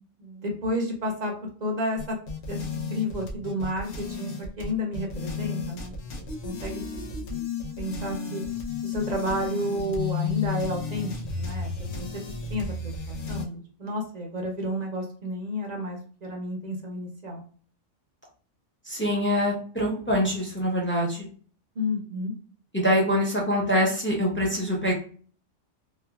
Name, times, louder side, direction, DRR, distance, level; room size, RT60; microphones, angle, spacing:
voice 1, 0.2-1.3 1.6-2.2 2.5-2.6 2.9-6.8 7.8-8.4 8.8-12.1 12.5-17.4 21.8-22.3, left 1 dB, 50° right, 2 dB, 0.5 m, -31 dB
sound 1, 2.0-13.5, left 5 dB, 65° left, 0.8 m, -33 dB
voice 2, 18.9-21.3 22.7-24.9, equal, 15° left, -3 dB, 0.4 m, -24 dB
3.1 x 2.2 x 2.2 m, 0.44 s
omnidirectional pair, 1.3 m